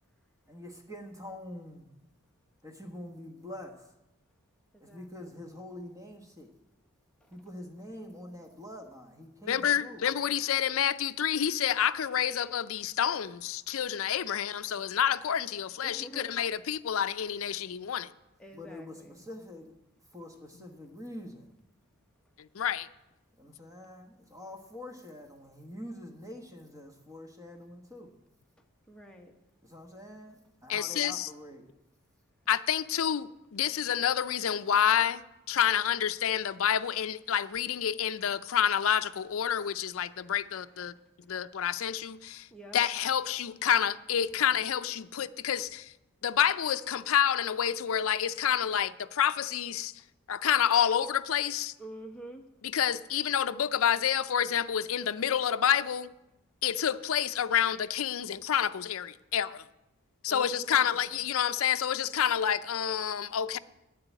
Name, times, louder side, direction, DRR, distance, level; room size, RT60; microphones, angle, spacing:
voice 1, 0.5-1.9 2.6-3.9 4.8-6.5 7.3-10.0 18.5-19.7 20.1-21.5 23.4-28.1 29.6-31.7, left 1 dB, 15° right, 1.2 m, -45 dB
voice 2, 4.7-5.1 7.2-7.3 15.8-16.4 18.4-19.2 28.9-29.3 42.5-42.8 51.8-52.4 60.3-61.0, right 1 dB, 5° left, 1.0 m, -47 dB
voice 3, 9.5-18.1 22.4-22.9 30.7-31.3 32.5-35.2 35.5-40.9 41.3-42.5 42.7-45.9 46.2-49.9 50.3-51.7 52.7-56.1 56.6-59.6 60.2-63.6, left 9 dB, 70° left, 0.5 m, -28 dB
8.8 x 7.7 x 9.2 m
head